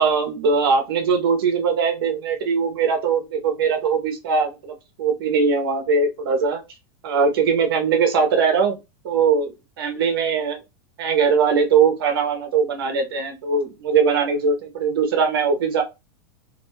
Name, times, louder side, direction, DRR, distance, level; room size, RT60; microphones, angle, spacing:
voice 1, 0.0-6.6 7.0-8.8 9.0-10.6 11.0-15.8, right 5 dB, 75° right, 0.7 m, -21 dB
2.4 x 2.2 x 3.1 m
supercardioid pair, 170°, 12 cm